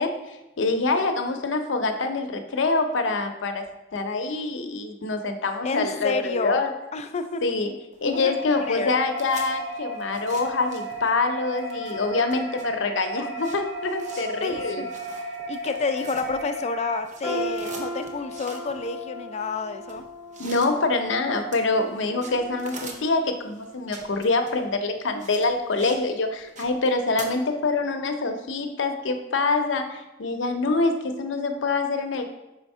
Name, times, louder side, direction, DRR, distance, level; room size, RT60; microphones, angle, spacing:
voice 1, 0.0-3.6 3.9-6.7 7.4-7.7 8.0-14.8 20.4-32.3, left 3 dB, 80° left, 6 dB, 0.6 m, -25 dB
voice 2, 5.6-6.6 6.9-7.4 8.0-8.3 8.7-9.0 14.4-14.9 15.5-20.0, left 4 dB, 35° left, 7 dB, 0.4 m, -29 dB
sound 1, 7.9-11.2 11.5-16.7 16.9-26.1 26.3-27.3, right 3 dB, 40° right, 0.8 m, -44 dB
sound 2, 8.1-17.0, equal, 65° right, 1.1 m, -34 dB
sound 3, 17.2-23.2 23.6-23.8 24.5-24.6, equal, 5° right, 1.6 m, -37 dB
5.0 x 3.5 x 5.4 m, 1.0 s
head